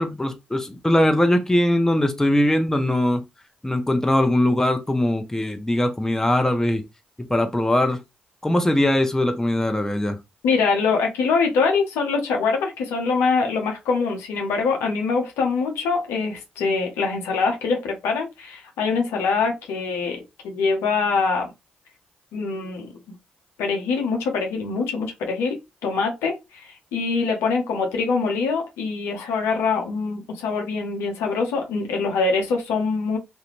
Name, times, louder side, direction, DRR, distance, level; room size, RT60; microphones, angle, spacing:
voice 1, 0.0-3.2 3.6-6.8 7.3-8.0 8.4-10.2, left 1 dB, 10° left, 0.6 m, -21 dB
voice 2, 10.4-21.5 22.3-23.2 23.6-33.2, left 4 dB, 80° left, 0.7 m, -24 dB
2.5 x 2.1 x 2.9 m
hypercardioid pair, 45°, 4 cm